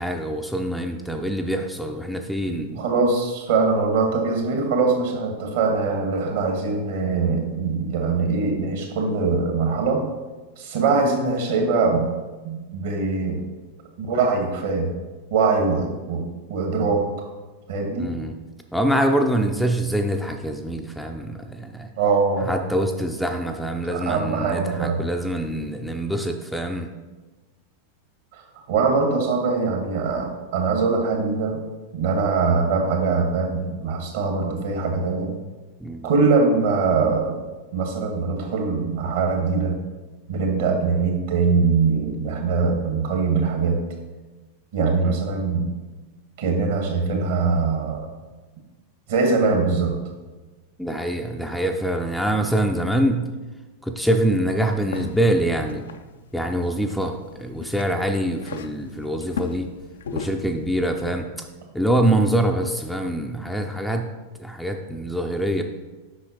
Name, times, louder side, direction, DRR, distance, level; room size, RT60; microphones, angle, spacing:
voice 1, 0.0-2.8 18.0-18.4 18.7-21.9 22.4-26.9 35.8-36.1 45.0-45.2 50.8-53.3 53.8-55.8 56.3-59.7 60.1-61.5 61.7-64.1 64.4-65.6, right 1 dB, ahead, 3 dB, 0.5 m, -24 dB
voice 2, 2.7-10.0 10.6-12.1 12.4-13.4 14.0-14.9 15.3-16.2 16.5-17.0 17.7-18.1 22.0-22.5 23.9-25.0 28.3-28.4 28.7-31.6 31.9-35.3 36.0-37.4 37.7-39.7 40.3-43.8 44.7-45.7 46.4-48.1 49.1-50.0, right 4 dB, 55° right, 3 dB, 1.4 m, -22 dB
sound 1, 54.5-61.2, left 6 dB, 65° left, 0.4 m, -38 dB
8.4 x 5.5 x 2.9 m, 1.2 s
figure-of-eight pair, 90°, 0 cm